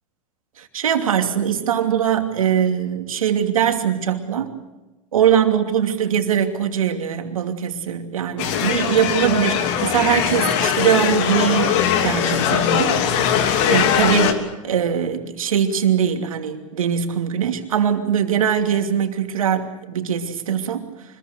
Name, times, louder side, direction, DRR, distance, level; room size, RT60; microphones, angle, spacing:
voice 1, 0.6-4.6 5.1-13.0 13.6-20.8, right 8 dB, 90° right, 5 dB, 2.8 m, -21 dB
sound 1, 8.4-14.3, left 8 dB, 60° left, 2.9 m, -20 dB
25.0 x 21.5 x 6.8 m, 1.1 s
hypercardioid pair, 110°, 17 cm